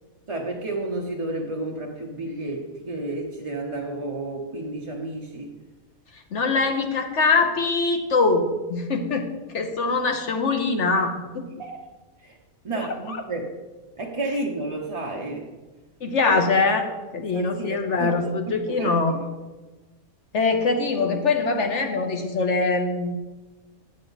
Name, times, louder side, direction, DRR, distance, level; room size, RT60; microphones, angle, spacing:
voice 1, 0.3-5.5 11.6-11.8 12.2-12.4 12.6-13.5 14.0-15.5 16.3-16.4 17.3-19.2, right 2 dB, 30° right, -2 dB, 0.6 m, -31 dB
voice 2, 6.3-9.3 9.5-11.4 12.7-13.2 16.0-16.9 17.1-19.2 20.3-23.2, left 3 dB, 60° left, 4 dB, 1.1 m, -23 dB
8.9 x 7.6 x 4.0 m, 1.2 s
omnidirectional pair, 1.5 m